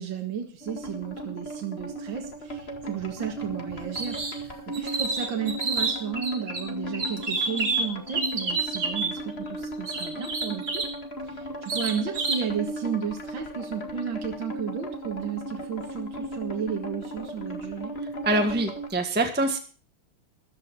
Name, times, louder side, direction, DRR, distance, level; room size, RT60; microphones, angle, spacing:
voice 1, 0.0-10.8 11.2-18.0, right 7 dB, 60° right, 2 dB, 2.2 m, -33 dB
sound 1, 0.6-18.9, right 1 dB, 30° left, 2.1 m, -37 dB
sound 2, 3.9-4.4 4.7-6.6 6.9-9.1 9.9-10.9 11.7-12.5, right 4 dB, 40° right, 2.9 m, -29 dB
voice 2, 18.2-19.6, right 2 dB, 5° right, 4 dB, 1.4 m, -24 dB
14.5 x 12.0 x 4.8 m, 0.38 s
omnidirectional pair, 2.4 m